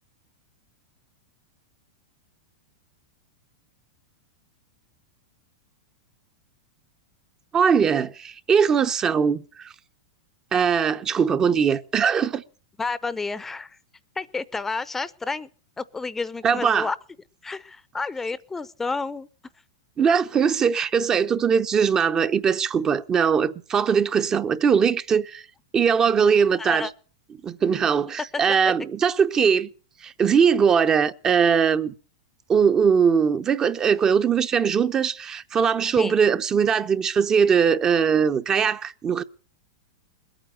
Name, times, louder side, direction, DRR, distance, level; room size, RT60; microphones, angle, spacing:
voice 1, 7.5-9.7 10.5-12.4 16.4-16.9 20.0-25.4 25.7-26.9 27.4-29.7 30.0-31.9 32.5-39.2, right 6 dB, 25° right, 0.7 m, -21 dB
voice 2, 12.8-13.8 14.2-15.5 15.8-17.0 17.4-19.3 26.6-26.9 28.6-28.7 36.0-36.1, left 4 dB, 10° left, 0.7 m, -30 dB
21.0 x 9.0 x 6.7 m
hypercardioid pair, 110°, 2 cm